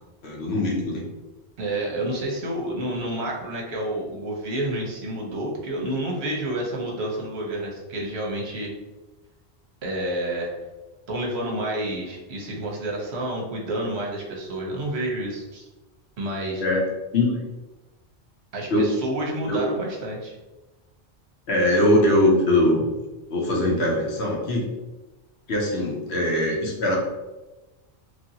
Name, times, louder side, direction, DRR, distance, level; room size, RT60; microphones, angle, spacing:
voice 1, 0.2-1.1 16.6-16.8 17.1-17.4 18.7-18.9 19.4-19.6 21.5-22.9 23.3-24.7 25.5-27.0, left 1 dB, 75° left, -1 dB, 1.0 m, -21 dB
voice 2, 1.6-8.7 9.8-10.5 11.1-15.7 16.2-16.6 18.5-20.4, right 1 dB, 70° right, -1 dB, 1.0 m, -29 dB
3.1 x 2.6 x 2.7 m, 1.1 s
omnidirectional pair, 1.1 m